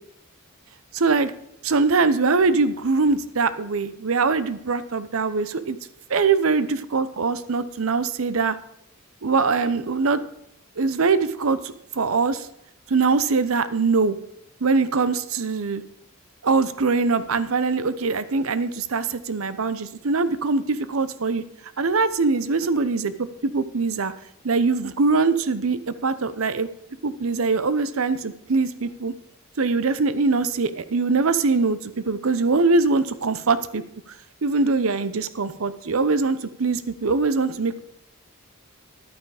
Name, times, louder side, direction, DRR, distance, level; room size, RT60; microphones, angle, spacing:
voice 1, 0.9-1.3 1.6-5.8 6.1-8.6 9.2-10.2 10.8-12.5 12.9-14.2 14.6-15.8 16.4-21.4 21.8-23.1 23.4-24.1 24.4-26.7 27.0-29.1 29.6-33.8 34.4-37.8, right 4 dB, 75° right, 14 dB, 0.7 m, -22 dB
11.0 x 9.0 x 4.8 m, 0.76 s
head